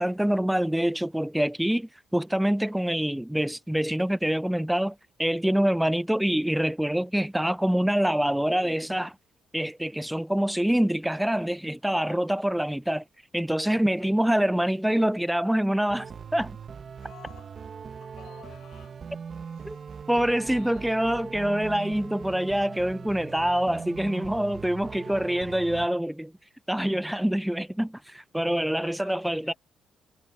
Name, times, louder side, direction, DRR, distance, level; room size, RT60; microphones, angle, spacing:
voice 1, 0.0-9.2 9.5-13.0 13.3-16.6 19.6-19.8 20.1-26.3 26.7-29.5, equal, 5° right, 0.4 m, -25 dB
voice 2, 11.9-12.2 16.9-19.0 19.4-20.1 20.5-21.1 28.8-29.6, left 12 dB, 80° left, 7.7 m, -54 dB
sound 1, 15.9-25.9, right 6 dB, 45° right, 1.8 m, -40 dB
cardioid pair, 90°, 0 cm